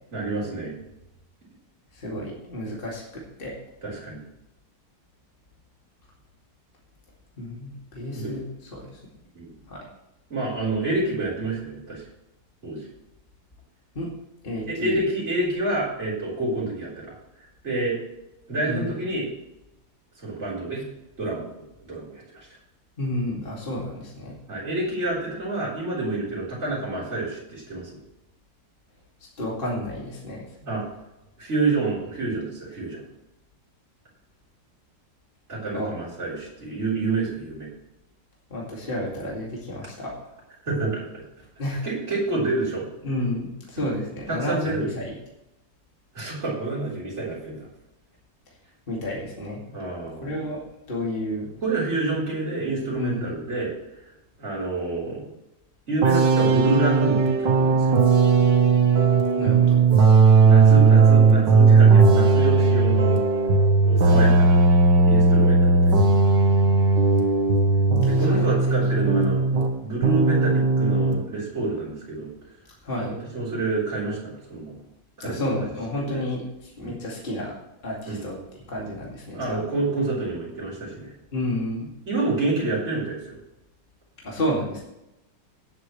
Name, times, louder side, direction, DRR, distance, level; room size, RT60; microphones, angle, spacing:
voice 1, 0.1-0.8 3.8-4.2 8.0-8.4 9.3-9.5 10.3-12.0 12.6-12.9 14.7-17.1 17.4-18.0 18.5-19.3 20.2-20.8 21.2-21.4 21.8-22.5 24.5-28.0 30.7-30.8 31.4-33.0 35.5-37.7 40.7-41.2 41.7-42.8 44.3-44.9 46.1-47.7 49.7-50.4 51.6-53.7 54.4-55.3 55.9-58.0 60.4-63.1 63.8-64.6 65.1-66.0 68.1-69.4 69.8-72.3 73.0-74.8 75.2-75.7 76.0-76.3 76.8-76.9 78.1-78.2 79.3-81.1 82.1-83.4, right 2 dB, 35° right, -6 dB, 4.2 m, -28 dB
voice 2, 1.9-3.5 7.4-8.4 8.7-9.0 9.7-9.8 13.9-14.1 14.4-15.0 18.6-18.9 23.0-24.3 29.4-30.4 35.7-35.9 38.5-40.1 41.6-41.9 43.0-45.1 48.9-49.6 50.2-50.6 50.9-51.5 53.0-53.4 59.4-59.8 64.1-64.4 68.2-68.5 69.1-69.2 72.8-73.1 75.2-77.5 77.8-78.4 78.7-79.6 81.3-81.9 84.2-84.8, left 1 dB, 30° left, -3 dB, 2.5 m, -30 dB
sound 1, 56.0-69.8 70.0-71.2, right 4 dB, 70° right, 1.8 m, -17 dB
17.5 x 8.3 x 3.2 m, 0.89 s
omnidirectional pair, 2.0 m